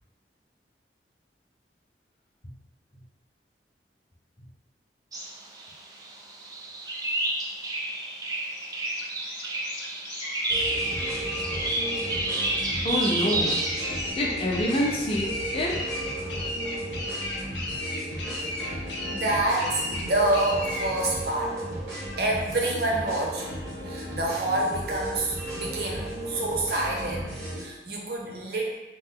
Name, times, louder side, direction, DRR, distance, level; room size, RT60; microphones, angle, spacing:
sound 1, 5.1-14.1, right 2 dB, 20° right, 0.3 m, -30 dB
sound 2, 8.5-20.9, left 2 dB, 85° left, 0.6 m, -35 dB
sound 3, 10.5-27.7, right 1 dB, 85° right, 1.0 m, -35 dB
voice 1, 12.8-13.6 14.2-15.8, left 1 dB, 30° left, -3 dB, 0.5 m, -26 dB
voice 2, 18.4-21.7 22.2-23.4 23.9-28.7, right 2 dB, 60° right, -1 dB, 0.6 m, -28 dB
3.0 x 2.0 x 3.6 m, 1.1 s
head